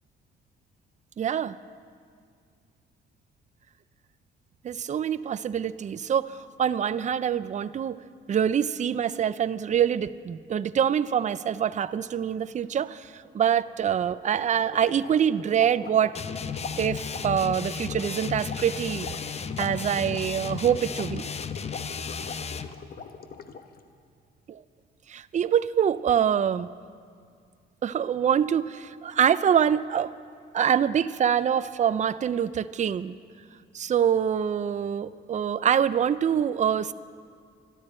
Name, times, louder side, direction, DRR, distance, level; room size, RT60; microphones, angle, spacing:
voice 1, 1.2-1.6 4.6-8.0 8.3-16.2 16.8-19.1 19.6-21.3 24.5-24.6 25.1-26.7 27.8-30.1 30.5-33.1 33.7-36.9, right 8 dB, 35° right, 14 dB, 0.5 m, -25 dB
sound 1, 14.4-23.8, left 6 dB, 50° left, 1.1 m, -42 dB
sound 2, 16.1-22.7, left 6 dB, 35° left, 0.7 m, -34 dB
24.5 x 12.5 x 4.4 m, 2.2 s
cardioid pair, 90°, 20 cm